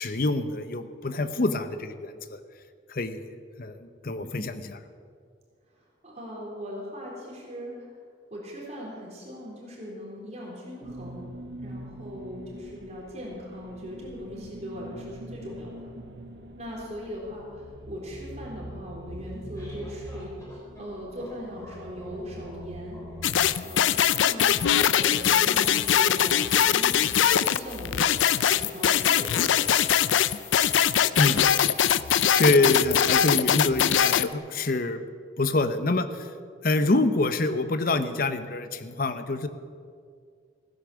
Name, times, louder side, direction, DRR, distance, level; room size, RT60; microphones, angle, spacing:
voice 1, 0.0-2.4 2.9-4.8 31.1-31.4 32.4-35.0 35.4-36.3 36.6-39.5, left 2 dB, 50° left, 10 dB, 0.8 m, -26 dB
voice 2, 6.0-7.8 8.3-11.3 11.6-15.9 16.6-20.3 20.8-23.0 23.6-27.2 27.5-28.2 28.5-29.6, equal, 35° right, -4 dB, 3.9 m, -39 dB
sound 1, 10.8-23.5, right 1 dB, 60° right, 1.2 m, -43 dB
sound 2, 19.2-24.2, equal, 15° left, 3.9 m, -49 dB
sound 3, 23.2-34.3, left 9 dB, 80° left, 0.4 m, -22 dB
16.0 x 10.0 x 7.0 m, 2.1 s
head